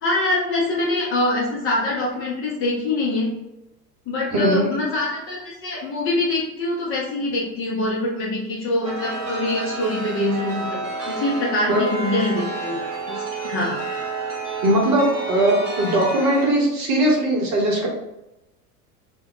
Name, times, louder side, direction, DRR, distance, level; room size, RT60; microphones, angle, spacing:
voice 1, 0.0-3.3 4.1-13.8, left 2 dB, 25° left, -3 dB, 0.7 m, -24 dB
voice 2, 4.3-4.7 11.7-11.8 14.6-17.9, right 1 dB, 35° right, -2 dB, 0.9 m, -19 dB
Chime, 8.8-16.5, right 3 dB, 70° right, 0.9 m, -30 dB
2.2 x 2.2 x 3.6 m, 0.90 s
figure-of-eight pair, 75°, 48 cm